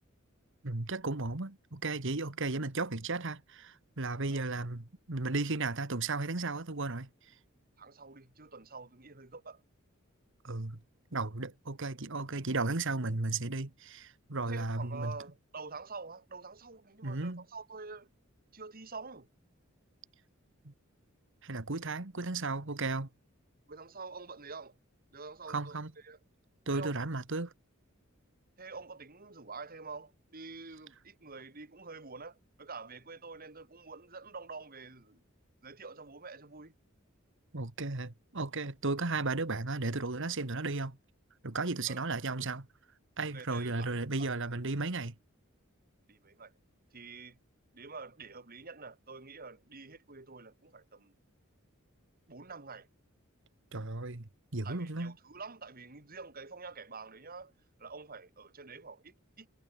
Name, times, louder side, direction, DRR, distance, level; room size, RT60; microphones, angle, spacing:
voice 1, 0.6-7.1 10.4-10.8 11.1-15.2 17.0-17.4 20.7-20.8 21.4-23.1 25.5-25.9 26.7-27.5 37.5-41.0 41.4-42.7 43.2-45.2 53.7-55.1, right 3 dB, 65° right, 1.8 m, -34 dB
voice 2, 7.8-9.6 14.5-18.1 18.5-19.3 23.7-24.8 25.1-26.2 26.7-27.1 28.6-35.2 35.6-36.7 41.9-42.0 43.3-43.9 44.2-44.3 46.1-46.5 46.9-47.4 47.7-51.1 52.3-52.9 54.6-57.5 57.8-59.5, right 4 dB, 45° right, 2.8 m, -47 dB
head